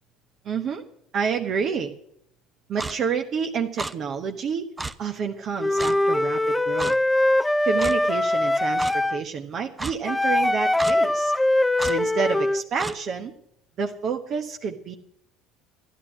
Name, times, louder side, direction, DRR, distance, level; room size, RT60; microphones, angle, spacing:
voice 1, 0.4-0.8 1.1-1.9 2.7-4.7 5.0-6.9 7.6-11.3 11.8-13.3 13.8-15.0, right 6 dB, 50° right, 4 dB, 1.1 m, -29 dB
Clock, 2.8-3.0 3.8-3.9 4.8-4.9 5.8-6.0 6.8-6.9 7.8-8.0 8.8-8.9 9.8-9.9 10.8-11.0 11.8-12.0 12.8-13.0, right 2 dB, 15° right, 0.8 m, -31 dB
Wind instrument woodwind instrument, 5.6-9.2 10.1-12.6, left 1 dB, 10° left, 0.5 m, -22 dB
13.0 x 11.5 x 6.1 m, 0.73 s
figure-of-eight pair, 60°, 0 cm